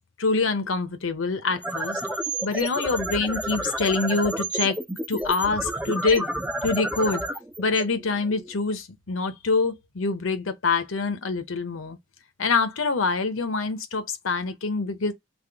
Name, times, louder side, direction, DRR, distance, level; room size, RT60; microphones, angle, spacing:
voice 1, 0.2-2.0 2.4-4.8 5.1-6.3 6.6-7.2 7.6-12.0 12.4-15.1, left 4 dB, 80° left, 0.7 m, -25 dB
sound 1, 1.5-8.6, right 1 dB, 5° right, 0.3 m, -30 dB
3.5 x 2.1 x 3.4 m
head